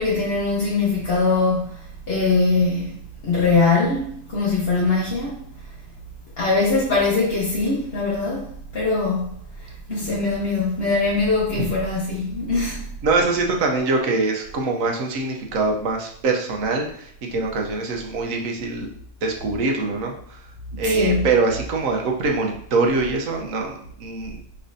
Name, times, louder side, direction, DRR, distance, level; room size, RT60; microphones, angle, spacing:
voice 1, 0.0-3.0 3.2-5.4 6.4-9.3 9.6-12.8 20.7-21.2, left 3 dB, 50° left, 1.1 m, -22 dB
voice 2, 13.0-18.9 19.2-20.1 20.8-24.4, right 3 dB, 75° right, 1.2 m, -23 dB
5.4 x 3.3 x 2.6 m
omnidirectional pair, 1.5 m